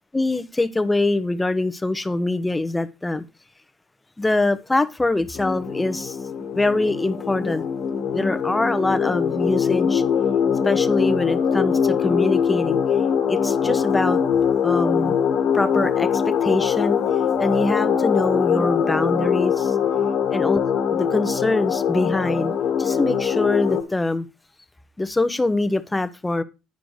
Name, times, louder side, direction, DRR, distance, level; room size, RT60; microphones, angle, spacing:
voice 1, 0.1-3.2 4.2-6.2 6.5-7.6 8.1-10.0 10.6-12.8 13.3-14.2 14.6-15.1 15.5-17.0 17.4-19.7 20.3-20.6 20.9-22.5 22.8-24.3 25.0-26.4, left 2 dB, 15° left, 1.0 m, -23 dB
sound 1, 5.3-23.8, left 7 dB, 60° left, 1.4 m, -22 dB
9.5 x 5.1 x 4.8 m
hypercardioid pair, 60°, 0 cm